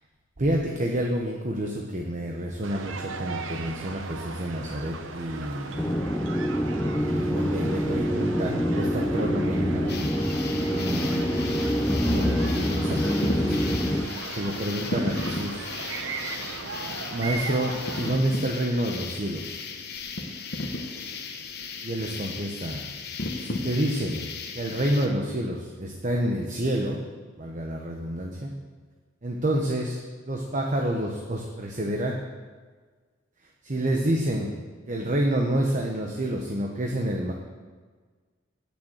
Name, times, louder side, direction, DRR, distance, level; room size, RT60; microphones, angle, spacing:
voice 1, 0.4-5.8 7.0-10.2 10.6-15.7 16.9-19.6 21.8-22.8 23.4-24.3 24.5-27.0 27.4-28.5 29.2-30.0 30.2-32.2 33.6-34.5 34.9-37.3, right 1 dB, 40° right, 1 dB, 1.0 m, -29 dB
sound 1, 2.6-18.2, right 4 dB, 75° right, 0.8 m, -38 dB
sound 2, 5.8-14.1, equal, 5° left, 0.5 m, -26 dB
sound 3, 9.9-25.1, left 3 dB, 55° left, 1.0 m, -35 dB
9.1 x 6.8 x 7.9 m, 1.5 s
head